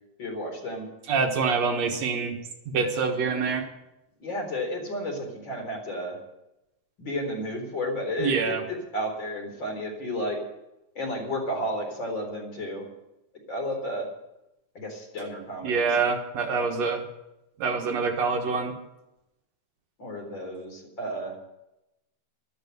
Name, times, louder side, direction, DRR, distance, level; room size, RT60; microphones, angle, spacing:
voice 1, 0.2-0.9 4.2-6.2 7.0-10.4 11.0-12.8 13.5-14.1 14.7-15.9 20.0-21.4, equal, 40° left, 1 dB, 4.6 m, -32 dB
voice 2, 1.1-2.4 2.7-3.6 8.2-8.6 15.6-17.0 17.6-18.7, right 5 dB, 65° right, 3 dB, 2.5 m, -25 dB
13.0 x 12.0 x 8.0 m, 0.90 s
omnidirectional pair, 3.4 m